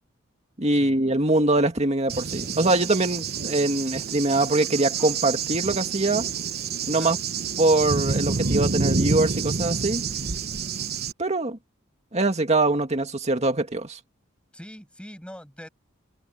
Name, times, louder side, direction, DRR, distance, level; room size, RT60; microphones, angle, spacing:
voice 1, 0.6-6.3 6.9-7.2 7.6-10.0 11.2-11.6 12.1-14.0, right 2 dB, 30° right, 2.1 m, -23 dB
Cricket / Thunder, 2.1-11.1, right 5 dB, 50° right, 1.1 m, -28 dB
voice 2, 14.5-15.7, equal, 5° left, 7.6 m, -42 dB
head